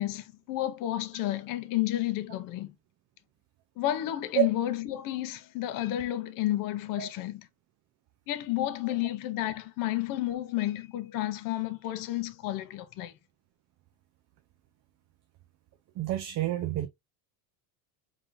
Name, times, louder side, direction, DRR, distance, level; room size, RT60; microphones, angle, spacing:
voice 1, 0.0-2.7 3.8-7.5 8.3-13.1, left 14 dB, 50° left, 0.7 m, -31 dB
voice 2, 16.0-16.9, right 13 dB, 40° right, 0.6 m, -28 dB
3.7 x 3.5 x 2.5 m
cardioid pair, 150°, 41 cm